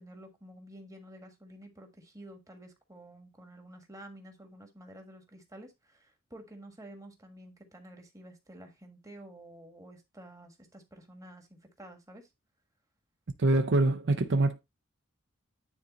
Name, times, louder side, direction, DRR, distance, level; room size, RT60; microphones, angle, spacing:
voice 1, 0.0-12.3, right 1 dB, 15° right, 1.5 m, -50 dB
voice 2, 13.4-14.6, right 2 dB, 55° right, 0.6 m, -25 dB
9.7 x 3.9 x 3.9 m
head